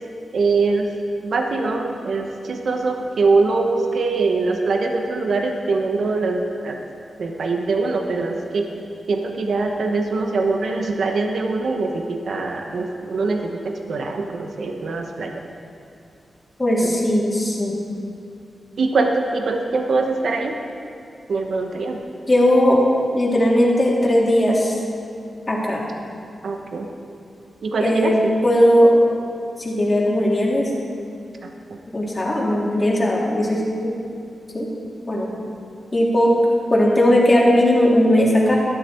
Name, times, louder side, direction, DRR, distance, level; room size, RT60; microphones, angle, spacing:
voice 1, 0.3-0.9 1.2-6.8 7.2-8.7 9.1-15.3 16.8-16.9 18.8-20.6 21.3-22.0 26.4-26.9 27.6-28.4 31.4-31.8, right 3 dB, 70° right, 3 dB, 1.1 m, -23 dB
voice 2, 16.6-17.7 22.3-22.8 23.1-24.8 25.5-25.8 27.8-28.2 28.4-29.0 29.6-30.6 31.9-33.6 34.5-34.7 35.1-35.3 35.9-36.3 36.7-38.6, equal, 25° left, -5 dB, 3.2 m, -17 dB
12.5 x 12.5 x 4.5 m, 2.5 s
cardioid pair, 80°, 0 cm